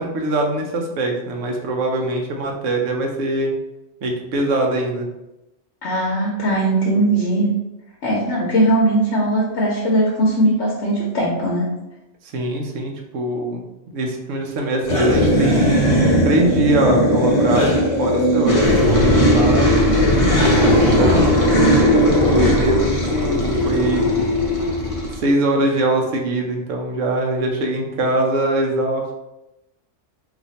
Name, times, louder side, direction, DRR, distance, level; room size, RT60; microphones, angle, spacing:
voice 1, 0.0-3.5 4.0-5.0 12.2-13.6 13.9-19.7 20.6-21.7 22.3-24.2 25.2-29.1, right 2 dB, 80° right, 2 dB, 1.0 m, -22 dB
voice 2, 5.8-7.5 8.0-11.6 20.5-21.3, right 1 dB, 70° left, -4 dB, 1.0 m, -19 dB
sound 1, 14.8-25.2, equal, 35° left, 0.7 m, -17 dB
2.8 x 2.5 x 4.0 m, 0.95 s
omnidirectional pair, 1.3 m